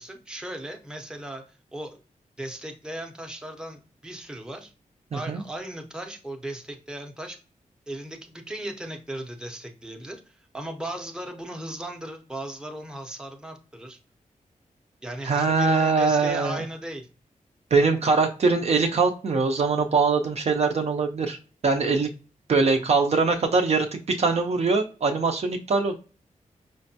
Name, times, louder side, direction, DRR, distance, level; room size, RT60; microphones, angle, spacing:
voice 1, 0.0-1.4 1.7-2.0 2.4-4.7 5.1-7.4 7.9-14.0 15.0-17.1, right 1 dB, 5° right, 3 dB, 0.6 m, -37 dB
voice 2, 5.1-5.4 15.2-16.6 17.7-21.4 21.6-22.1 22.5-26.0, right 4 dB, 50° right, 4 dB, 0.5 m, -22 dB
5.0 x 2.1 x 2.7 m, 0.36 s
wide cardioid pair, 140°, 14 cm